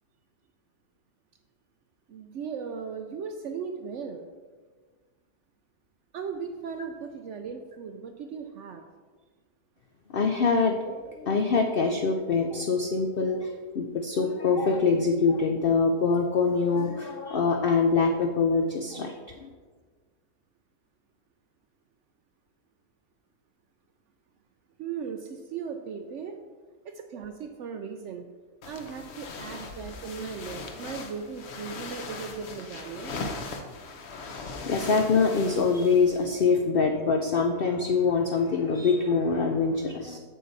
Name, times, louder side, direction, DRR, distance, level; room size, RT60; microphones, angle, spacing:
voice 1, 2.1-4.3 6.1-8.8 24.8-26.4 26.8-28.3 28.7-33.2, right 6 dB, 70° right, 6 dB, 0.7 m, -37 dB
voice 2, 10.1-19.5 34.3-40.2, left 4 dB, 90° left, 4 dB, 0.5 m, -24 dB
sound 1, 28.6-36.4, left 3 dB, 50° left, 0.9 m, -39 dB
7.5 x 6.8 x 4.0 m, 1.5 s
omnidirectional pair, 1.7 m